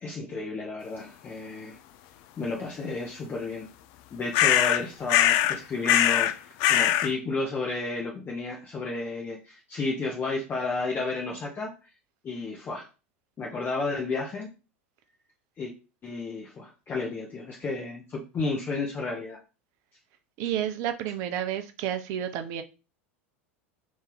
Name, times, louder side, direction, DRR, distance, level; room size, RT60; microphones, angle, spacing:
voice 1, 0.0-1.8 2.4-3.7 4.1-11.7 12.2-12.9 13.4-14.5 15.6-15.7 16.0-19.4, left 3 dB, 25° left, 0.8 m, -32 dB
sound 1, 4.3-4.8 5.1-5.6 5.9-6.3 6.6-7.1, left 12 dB, 50° left, 0.3 m, -21 dB
voice 2, 20.4-22.6, right 10 dB, 50° right, 0.6 m, -30 dB
3.0 x 2.7 x 3.8 m
figure-of-eight pair, 85°, 7 cm